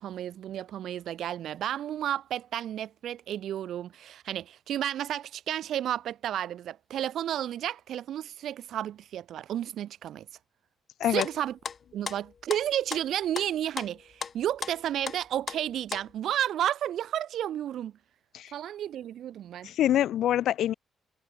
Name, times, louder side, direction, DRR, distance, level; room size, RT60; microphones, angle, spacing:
voice 1, 0.0-10.3 11.1-11.6 11.9-17.9 18.5-19.7, right 11 dB, 70° right, 3.0 m, -32 dB
sound 1, 11.1-13.5 13.8-15.2 15.5-16.1, left 6 dB, 45° left, 3.2 m, -37 dB
voice 2, 19.6-20.7, left 12 dB, 75° left, 1.8 m, -25 dB
cardioid pair, 90°, 0 cm